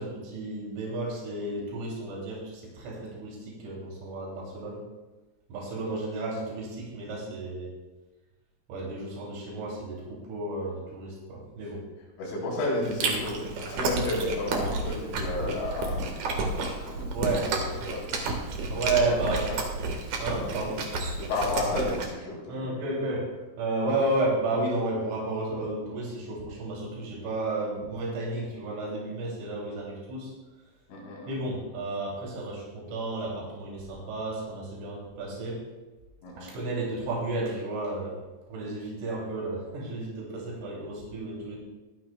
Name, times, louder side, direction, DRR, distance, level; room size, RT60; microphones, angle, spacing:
voice 1, 0.0-4.8 5.5-7.7 8.7-11.8 13.7-14.0 17.1-17.5 18.7-19.5 20.2-20.9 22.5-23.3 23.6-30.3 31.3-35.6 36.4-38.2 38.5-41.6, right 2 dB, 85° right, -4 dB, 5.4 m, -32 dB
voice 2, 12.2-16.5 16.8-17.2 17.9-18.2 18.9-19.6 21.2-22.7 30.9-31.3 36.2-36.5, left 2 dB, 75° left, -3 dB, 5.9 m, -32 dB
Chewing mastication, 12.8-22.1, right 3 dB, 65° right, 2.0 m, -31 dB
23.5 x 9.8 x 2.3 m, 1.2 s
omnidirectional pair, 5.6 m